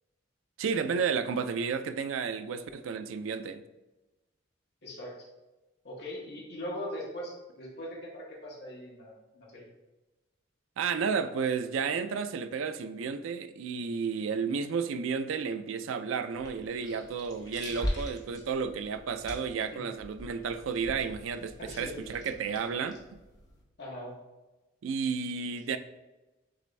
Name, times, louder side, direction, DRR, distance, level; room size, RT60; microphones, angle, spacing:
voice 1, 0.6-3.6 10.8-23.2 24.8-25.8, right 5 dB, 90° right, 0.4 m, -32 dB
voice 2, 4.8-5.1 5.8-9.7 19.7-19.8 21.6-22.0 23.8-24.2, left 1 dB, 55° left, 1.3 m, -40 dB
sound 1, 16.3-23.6, equal, 20° left, 0.8 m, -41 dB
6.4 x 2.5 x 3.2 m
head